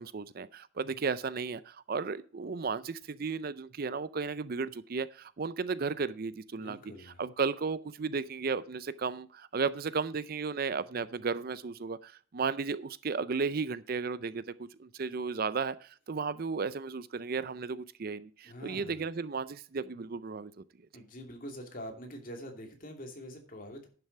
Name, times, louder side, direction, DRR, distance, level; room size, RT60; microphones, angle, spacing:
voice 1, 0.0-6.8 7.2-20.5, right 5 dB, 50° right, 16 dB, 0.5 m, -34 dB
voice 2, 6.5-7.2 18.4-19.1 20.9-23.9, equal, 45° left, 3 dB, 2.7 m, -45 dB
11.0 x 6.9 x 4.6 m, 0.41 s
head